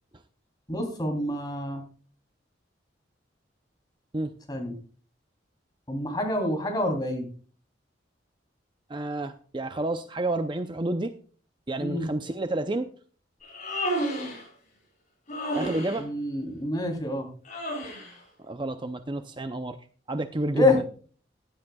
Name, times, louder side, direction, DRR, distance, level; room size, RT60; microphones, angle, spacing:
voice 1, 0.7-1.8 4.5-4.7 5.9-7.3 11.8-12.1 16.0-17.3 20.5-20.8, left 1 dB, 20° left, 2 dB, 3.2 m, -27 dB
voice 2, 8.9-11.1 11.7-12.9 15.5-16.1 17.8-18.0 18.4-19.8 20.1-20.8, right 2 dB, 25° right, 9 dB, 0.6 m, -30 dB
Human voice, 13.4-14.5 15.3-16.0 17.4-18.1, equal, 40° left, 6.6 m, -31 dB
15.5 x 11.5 x 2.3 m, 0.41 s
head